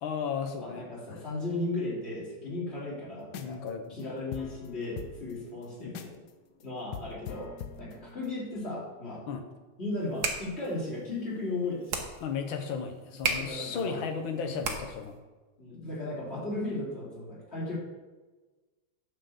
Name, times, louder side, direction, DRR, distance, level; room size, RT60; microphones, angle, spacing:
voice 1, 0.0-1.2 3.4-4.0 5.8-6.0 9.3-9.4 12.2-15.2, left 6 dB, 85° left, 6 dB, 1.8 m, -35 dB
voice 2, 0.6-3.6 3.9-6.1 6.6-7.5 7.8-9.2 9.8-12.0 13.4-14.0 15.6-17.8, left 2 dB, 30° left, -6 dB, 3.2 m, -35 dB
sound 1, 3.2-3.7 4.0-4.1 4.3-6.3 6.6-6.7 6.9-8.4, left 8 dB, 65° left, 1.2 m, -42 dB
sound 2, 9.9-15.2, right 4 dB, 60° right, 1.6 m, -36 dB
9.2 x 5.4 x 7.0 m, 1.2 s
omnidirectional pair, 2.1 m